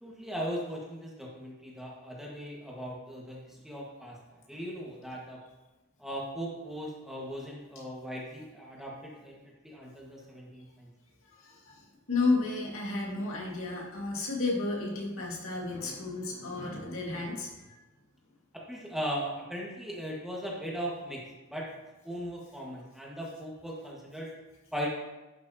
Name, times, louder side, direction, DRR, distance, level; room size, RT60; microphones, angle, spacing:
voice 1, 0.0-5.4 6.0-10.9 18.7-21.7 22.0-24.3 24.7-24.9, equal, ahead, -4 dB, 1.6 m, -38 dB
voice 2, 11.3-17.8, left 3 dB, 85° left, -2 dB, 2.0 m, -32 dB
11.5 x 6.3 x 2.9 m, 1.1 s
head